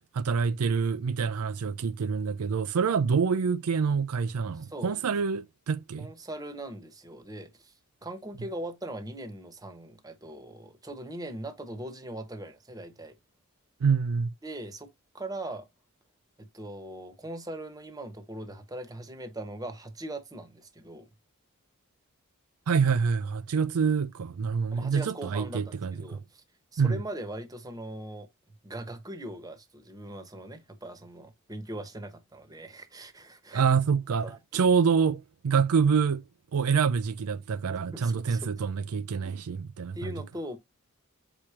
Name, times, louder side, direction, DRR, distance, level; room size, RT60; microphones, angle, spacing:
voice 1, 0.1-6.1 13.8-14.3 22.7-26.2 26.8-27.0 33.5-34.3 34.5-36.2 36.5-40.1, right 6 dB, 80° right, 0.4 m, -26 dB
voice 2, 4.5-5.0 6.0-7.7 8.0-13.2 14.4-14.9 15.1-15.7 16.4-21.1 24.7-26.4 26.7-28.3 28.6-33.6 34.2-34.7 37.9-38.7 39.9-40.6, right 1 dB, 15° right, 1.0 m, -40 dB
7.3 x 4.9 x 2.8 m
head